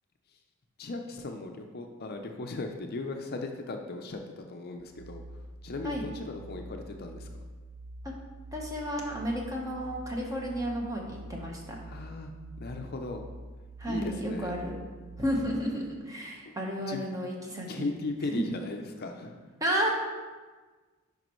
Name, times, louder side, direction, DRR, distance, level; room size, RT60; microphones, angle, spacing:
voice 1, 0.8-5.2 5.6-7.3 11.9-12.3 12.6-13.2 13.9-14.5 16.5-16.6 16.9-17.1 17.7-19.4, left 3 dB, 50° left, 4 dB, 0.5 m, -37 dB
sound 1, 4.8-15.5, right 1 dB, 65° right, 0.6 m, -45 dB
voice 2, 8.5-11.8 13.8-14.8 15.2-17.9 18.3-18.4 19.6-19.9, equal, 15° right, -1 dB, 1.1 m, -32 dB
9.1 x 5.3 x 3.1 m, 1.3 s
head